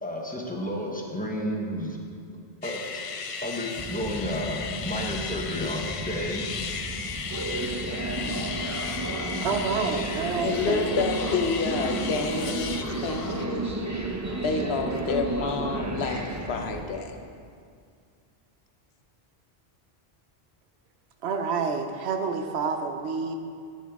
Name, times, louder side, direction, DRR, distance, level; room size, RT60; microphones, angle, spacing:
voice 1, 0.0-2.0 2.6-3.0 3.4-6.5 8.2-8.5, equal, 10° left, -1 dB, 0.9 m, -32 dB
sound 1, 2.6-13.5, left 6 dB, 60° left, 0.3 m, -35 dB
sound 2, 3.8-16.8, right 2 dB, 20° right, 0.5 m, -32 dB
voice 2, 9.4-11.1 21.2-23.3, right 5 dB, 80° right, 6 dB, 1.0 m, -28 dB
voice 3, 10.4-13.8 14.4-17.2, left 4 dB, 75° left, 5 dB, 1.0 m, -29 dB
10.0 x 8.4 x 3.5 m, 2.2 s
omnidirectional pair, 1.1 m